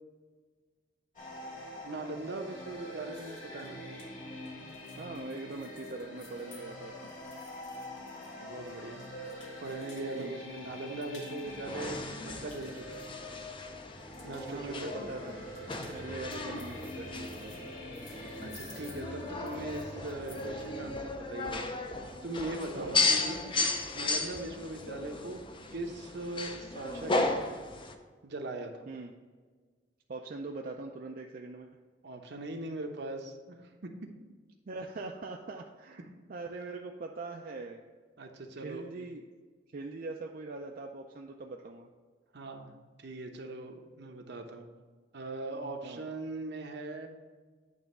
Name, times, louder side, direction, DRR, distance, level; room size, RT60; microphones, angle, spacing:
sound 1, 1.1-20.9, left 1 dB, 50° left, 2.2 m, -45 dB
voice 1, 1.8-3.8 8.4-9.0 9.6-13.0 14.2-15.1 18.4-21.7 22.2-23.4 23.9-25.4 25.7-27.4 28.2-28.8 32.0-33.9 38.2-38.9 42.3-44.7 45.1-47.1, right 2 dB, 65° right, 4 dB, 0.9 m, -40 dB
sound 2, 3.1-10.2 10.6-11.6 11.9-13.6 13.9-14.5 15.3-20.7, left 3 dB, 90° left, 1.9 m, -57 dB
voice 2, 5.0-7.1 10.1-10.4 14.5-15.3 15.9-17.7 22.7-23.1 28.9-29.1 30.1-31.7 34.7-36.0 36.3-37.8 38.6-39.2 39.7-41.9 45.8-46.1, right 3 dB, 50° right, 1 dB, 0.5 m, -42 dB
sound 3, 11.5-27.9, left 3 dB, 30° left, 0.6 m, -35 dB
9.2 x 3.4 x 5.4 m, 1.5 s
head